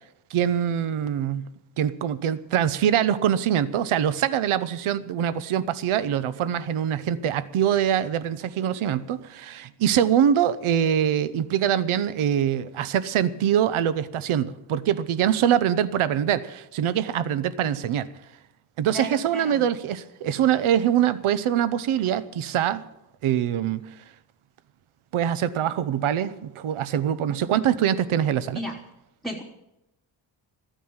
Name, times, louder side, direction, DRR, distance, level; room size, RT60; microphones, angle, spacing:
voice 1, 0.3-1.5 1.8-18.1 18.8-22.8 23.2-23.8 25.1-28.6, right 9 dB, 80° right, 15 dB, 0.9 m, -24 dB
voice 2, 18.9-19.6 28.5-28.8 29.2-29.4, right 1 dB, ahead, 0 dB, 1.2 m, -33 dB
14.0 x 9.1 x 8.9 m, 0.88 s
wide cardioid pair, 145°, 48 cm